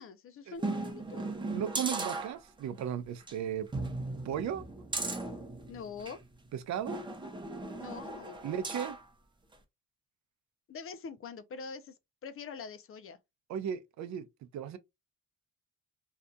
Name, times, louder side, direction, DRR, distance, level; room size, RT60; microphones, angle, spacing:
voice 1, 0.0-1.3 5.7-6.2 7.8-8.4 10.7-11.9 12.2-13.2, left 5 dB, 45° left, 0.5 m, -44 dB
sound 1, 0.6-2.8 3.2-3.3 3.7-6.2 6.9-9.1 9.5-9.6, right 2 dB, 15° right, 0.7 m, -37 dB
voice 2, 1.5-3.7 4.2-4.6 6.5-7.0 8.4-9.0 13.5-14.3 14.5-14.8, right 9 dB, 65° right, 0.6 m, -35 dB
2.7 x 2.4 x 2.2 m
cardioid pair, 90°, 30 cm